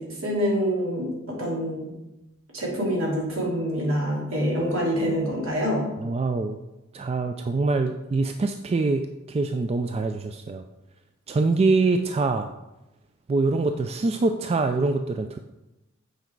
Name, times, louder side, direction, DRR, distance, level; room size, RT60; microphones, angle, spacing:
voice 1, 0.0-1.9 2.5-5.9, equal, 70° right, -4 dB, 2.7 m, -26 dB
voice 2, 6.0-6.6 6.9-9.0 9.3-10.6 11.3-12.5 13.3-15.4, right 3 dB, 30° right, 6 dB, 0.3 m, -24 dB
8.0 x 4.9 x 4.6 m, 0.96 s
head